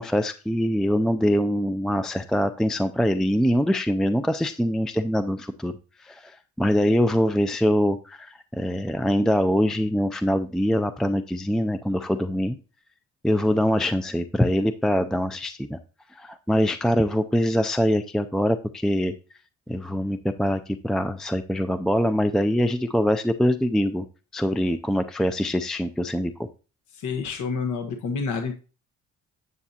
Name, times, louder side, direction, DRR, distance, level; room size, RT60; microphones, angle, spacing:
voice 1, 0.0-5.8 6.0-12.6 13.2-15.8 16.1-19.1 19.7-24.0 24.3-26.3, equal, ahead, 9 dB, 0.4 m, -23 dB
voice 2, 26.9-28.6, left 5 dB, 75° left, 4 dB, 1.2 m, -28 dB
9.7 x 6.7 x 2.8 m, 0.35 s
cardioid pair, 90°, 30 cm